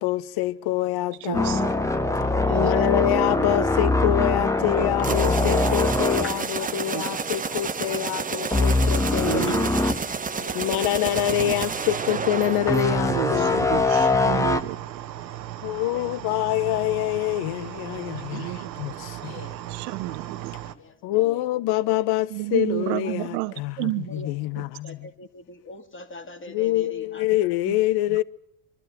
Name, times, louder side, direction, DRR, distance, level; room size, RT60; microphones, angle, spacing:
voice 1, 0.0-1.8 2.5-9.6 10.5-13.8 15.6-19.5 21.0-25.1 26.5-28.2, left 14 dB, 50° left, 0.8 m, -26 dB
sound 1, 1.3-7.4 7.7-8.0 8.5-10.0 10.5-10.6 12.7-14.6, left 2 dB, 5° left, 1.3 m, -23 dB
voice 2, 1.3-1.7 5.1-5.2 6.9-7.0 9.1-9.7 11.4-11.5 13.1-14.8 18.1-18.7 19.2-19.3 19.7-20.5 22.3-24.3 24.6-24.7, right 18 dB, 65° right, 1.0 m, -30 dB
voice 3, 2.3-3.2 6.2-6.7 7.3-7.4 8.4-8.5 9.7-9.8 10.3-10.8 15.9-16.0 18.9-19.0 19.3-19.6 20.7-21.6 23.0-23.1 24.1-24.3 24.8-27.2, left 1 dB, 25° left, 2.5 m, -42 dB
sound 2, 5.0-13.6, right 5 dB, 15° right, 0.9 m, -31 dB
sound 3, 11.1-20.7, right 13 dB, 90° right, 1.0 m, -37 dB
24.0 x 12.5 x 9.0 m
hypercardioid pair, 75°, 49 cm